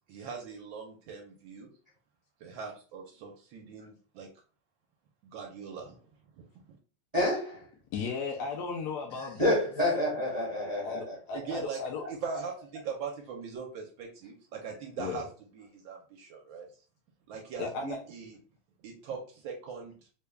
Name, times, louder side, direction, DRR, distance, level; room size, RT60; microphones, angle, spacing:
voice 1, 0.1-1.7 2.4-4.3 5.2-6.8 11.3-11.8 12.1-15.3 15.5-16.8 17.3-18.4 18.8-20.0, right 6 dB, 75° right, 1.3 m, -41 dB
voice 2, 7.1-7.6 9.4-11.5, left 1 dB, 30° right, 0.8 m, -28 dB
voice 3, 7.9-9.5 10.8-12.0 15.0-15.2 17.6-18.0, left 5 dB, 70° left, 1.0 m, -35 dB
3.6 x 2.2 x 3.3 m
omnidirectional pair, 2.3 m